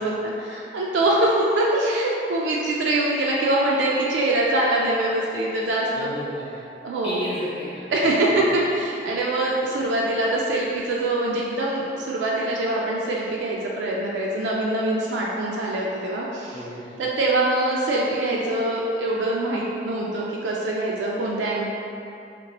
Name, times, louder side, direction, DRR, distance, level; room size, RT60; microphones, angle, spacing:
voice 1, 0.0-6.1 6.8-7.2 7.9-16.6 17.0-21.6, right 1 dB, 90° right, -3 dB, 0.3 m, -24 dB
voice 2, 5.9-6.6 7.0-8.4 16.5-17.0, left 1 dB, 30° left, -10 dB, 0.4 m, -34 dB
2.9 x 2.8 x 2.9 m, 2.6 s
head